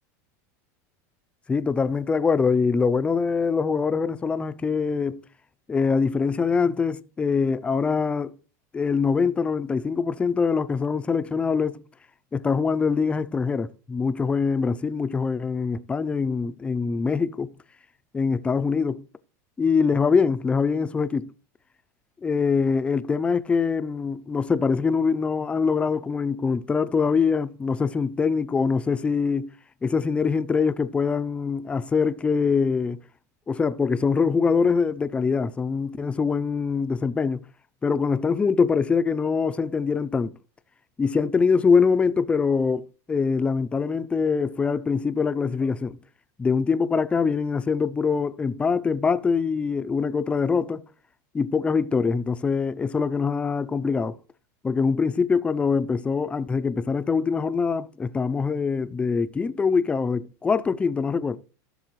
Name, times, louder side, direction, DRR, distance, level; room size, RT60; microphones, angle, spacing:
voice 1, 1.5-5.2 5.7-8.3 8.7-11.8 12.3-17.5 18.1-19.0 19.6-21.3 22.2-29.5 29.8-33.0 33.5-37.4 37.8-40.3 41.0-46.0 46.4-50.8 51.3-54.2 54.6-61.4, left 5 dB, 10° left, 0.4 m, -23 dB
15.5 x 6.7 x 3.1 m
supercardioid pair, 145°, 9 cm